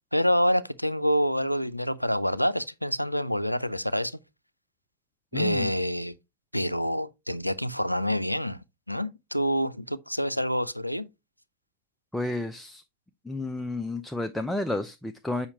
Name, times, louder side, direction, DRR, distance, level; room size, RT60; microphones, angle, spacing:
voice 1, 0.1-4.2 5.3-6.2 6.5-8.6 8.9-11.1, equal, 90° left, 0.4 m, -27 dB
voice 2, 5.3-5.7 12.1-12.8 13.2-15.5, left 2 dB, 5° left, 0.4 m, -31 dB
7.1 x 5.4 x 3.0 m
figure-of-eight pair, 90°, 0 cm